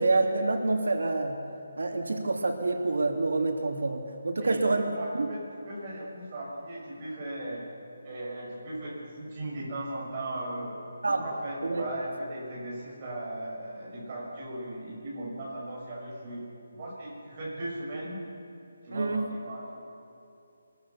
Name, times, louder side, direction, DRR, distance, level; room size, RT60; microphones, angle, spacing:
voice 1, 0.0-1.4 1.8-4.8 5.2-5.3 11.0-11.2 11.6-11.9 18.9-19.3, right 3 dB, 90° right, 3 dB, 2.9 m, -27 dB
voice 2, 4.4-7.7 8.0-10.8 11.2-18.2 18.8-19.8, right 1 dB, 20° right, -6 dB, 5.9 m, -37 dB
25.0 x 22.0 x 7.1 m, 2.8 s
hypercardioid pair, 180°, 0 cm